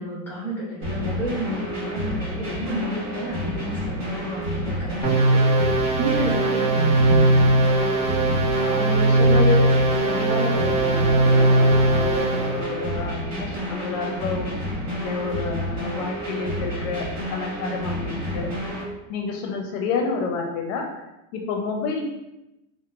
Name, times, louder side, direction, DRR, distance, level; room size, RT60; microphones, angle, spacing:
voice 1, 0.0-5.4 6.0-7.3, right 1 dB, 5° left, -7 dB, 1.0 m, -30 dB
sound 1, 0.8-18.8, equal, 35° right, 1.2 m, -30 dB
sound 2, 5.0-12.6, right 2 dB, 25° left, 1.3 m, -19 dB
voice 2, 8.6-9.7 10.0-14.6 14.9-18.5 19.1-20.9 21.3-22.0, left 4 dB, 75° left, 2 dB, 0.5 m, -29 dB
2.9 x 2.0 x 2.3 m, 0.94 s
supercardioid pair, 150°, 38 cm